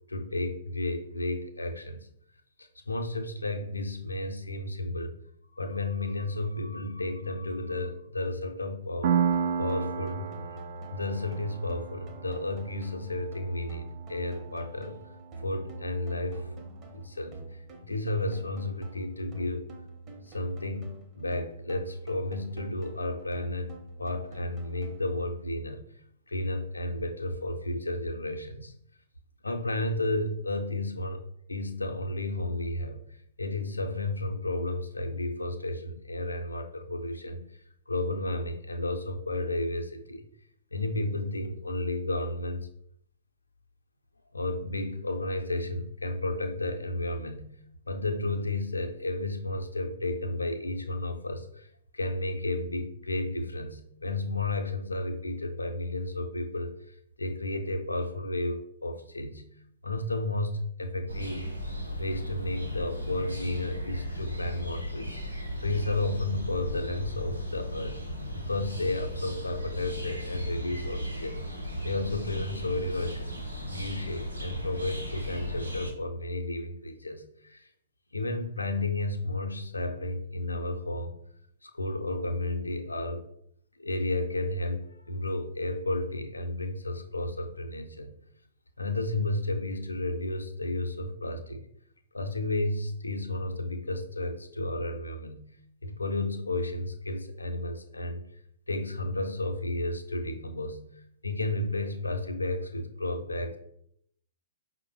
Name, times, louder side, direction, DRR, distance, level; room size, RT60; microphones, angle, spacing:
voice 1, 0.1-2.1 2.6-5.1 5.5-9.2 9.6-10.3 10.9-15.0 15.4-16.5 16.9-19.6 20.2-23.7 24.0-25.9 26.3-28.8 29.4-31.2 31.5-37.4 37.9-40.3 40.7-42.7 44.3-47.5 47.9-59.4 59.8-61.5 62.0-65.2 65.6-68.0 68.3-71.4 71.8-73.4 73.7-77.7 78.1-81.2 81.6-83.2 83.8-88.2 88.8-91.7 92.1-95.5 95.8-98.2 98.7-103.6, left 2 dB, 80° left, 6 dB, 0.5 m, -32 dB
Piano, 9.0-16.4, right 7 dB, 50° right, 0.3 m, -34 dB
sound 1, 9.3-25.3, right 2 dB, 25° right, 0.7 m, -46 dB
sound 2, 61.1-75.9, equal, 85° right, 0.8 m, -36 dB
4.9 x 2.0 x 3.2 m, 0.70 s
figure-of-eight pair, 115°, 0 cm